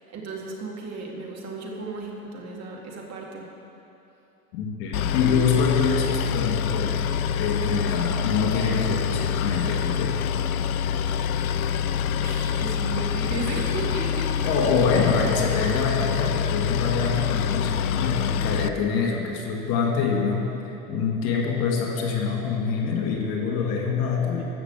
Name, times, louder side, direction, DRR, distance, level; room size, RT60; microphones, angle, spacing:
voice 1, 0.1-3.5 12.1-14.5, right 3 dB, 35° right, -2 dB, 2.4 m, -35 dB
voice 2, 4.5-10.2 14.5-24.4, left 5 dB, 50° left, 1 dB, 2.1 m, -25 dB
Boat Water vehicle, 4.9-18.7, left 7 dB, 70° left, 0.6 m, -26 dB
14.0 x 6.3 x 7.5 m, 2.9 s
figure-of-eight pair, 75°, 44 cm